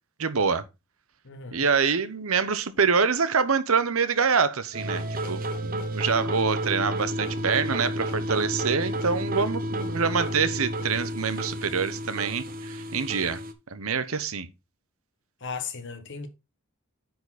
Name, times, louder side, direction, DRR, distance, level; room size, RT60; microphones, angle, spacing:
voice 1, 0.2-0.6 1.5-13.4 13.7-14.5, right 5 dB, 70° right, 0.9 m, -26 dB
voice 2, 1.2-1.6 15.4-16.3, left 5 dB, 55° left, 1.3 m, -36 dB
sound 1, 4.7-13.5, right 1 dB, 40° right, 1.0 m, -31 dB
9.4 x 4.8 x 4.1 m
head